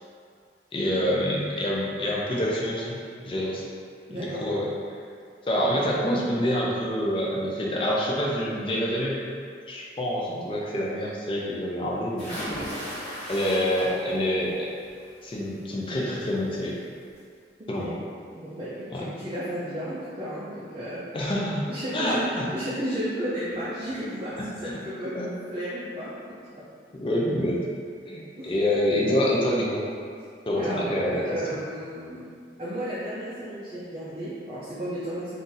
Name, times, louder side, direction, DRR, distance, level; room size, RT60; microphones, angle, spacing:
voice 1, 0.7-3.0 3.3-3.6 4.1-4.7 5.5-9.2 9.7-12.3 13.3-14.7 15.2-16.7 17.7-18.0 18.9-19.1 21.1-21.7 21.9-22.5 24.6-24.8 25.1-25.3 26.9-27.6 28.1-29.8 30.5-31.2, equal, 30° left, -4 dB, 0.4 m, -26 dB
voice 2, 4.1-4.4 17.6-17.9 18.4-21.1 21.7-26.4 28.4-28.6 30.6-32.3 32.6-35.3, equal, 30° right, -9 dB, 0.4 m, -33 dB
sound 1, 12.2-14.3 14.7-15.1 16.5-16.6 17.0-17.1, equal, 5° left, 1.2 m, -35 dB
2.7 x 2.5 x 3.8 m, 2.3 s
head